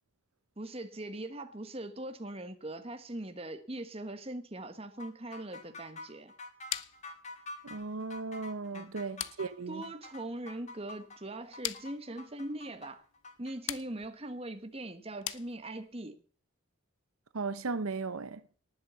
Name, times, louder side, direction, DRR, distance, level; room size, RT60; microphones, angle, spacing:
voice 1, 0.6-6.3 8.7-8.9 9.7-13.0 13.4-16.2, right 1 dB, 25° right, 1.3 m, -41 dB
sound 1, 5.0-13.6, left 2 dB, 35° left, 2.0 m, -47 dB
sound 2, 6.7-16.0, left 13 dB, 70° left, 0.8 m, -44 dB
voice 2, 7.6-9.8 17.3-18.4, right 4 dB, 85° right, 0.8 m, -36 dB
19.0 x 7.2 x 7.0 m
head